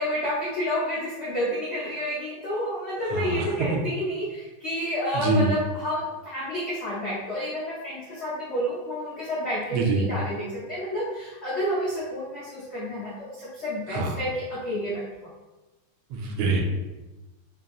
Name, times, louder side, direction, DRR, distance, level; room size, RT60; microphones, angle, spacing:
voice 1, 0.0-15.0, equal, 75° left, -9 dB, 0.6 m, -30 dB
voice 2, 3.1-3.8 5.1-5.5 9.7-10.1 13.9-14.2 16.1-16.6, right 3 dB, 80° right, 1 dB, 1.4 m, -25 dB
3.5 x 2.6 x 2.3 m, 1.1 s
omnidirectional pair, 2.3 m